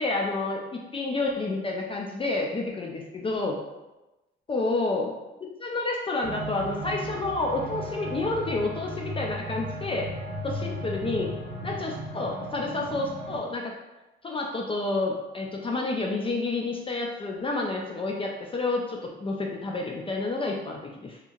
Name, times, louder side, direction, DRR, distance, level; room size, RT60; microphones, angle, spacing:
voice 1, 0.0-3.6 4.5-5.1 5.4-10.1 10.4-11.3 11.6-13.7 14.2-21.2, left 2 dB, 25° left, 0 dB, 0.4 m, -29 dB
sound 1, 6.2-13.4, equal, 55° right, 0.7 m, -36 dB
2.8 x 2.7 x 2.4 m, 1.0 s
cardioid pair, 90°, 20 cm